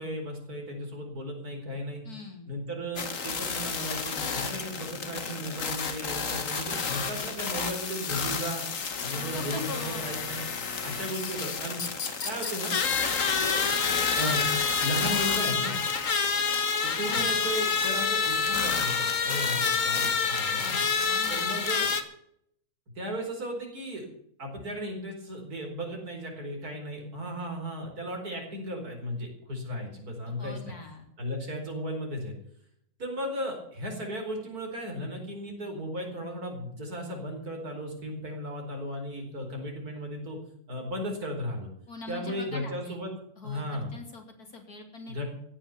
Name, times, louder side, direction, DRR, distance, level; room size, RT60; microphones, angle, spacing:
voice 1, 0.0-2.0 2.5-8.6 9.0-10.4 10.8-11.8 12.2-12.7 13.4-15.8 16.8-20.8 21.0-21.9 23.0-24.1 24.4-30.7 31.2-32.3 33.0-40.4 40.7-41.7 42.1-43.1 43.4-43.9 45.1-45.2, equal, 80° right, 2 dB, 5.0 m, -35 dB
voice 2, 2.0-2.5 9.2-10.2 17.1-17.4 21.1-21.6 30.3-31.1 41.9-43.0 43.4-45.2, left 3 dB, 80° left, 4 dB, 3.8 m, -42 dB
sound 1, 3.0-22.0, left 5 dB, 60° left, 1.9 m, -29 dB
15.5 x 10.0 x 7.1 m, 0.70 s
omnidirectional pair, 1.6 m